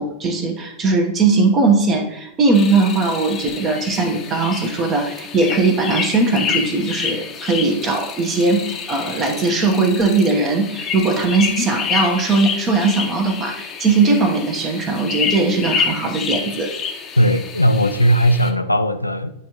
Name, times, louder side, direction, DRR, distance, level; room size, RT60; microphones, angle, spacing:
voice 1, 0.0-16.7, right 3 dB, 30° right, 1.1 m, -19 dB
sound 1, 2.5-18.5, left 6 dB, 25° left, 0.8 m, -28 dB
voice 2, 17.2-19.3, equal, 85° left, 0.4 m, -17 dB
10.0 x 3.6 x 3.0 m
figure-of-eight pair, 90°, 0 cm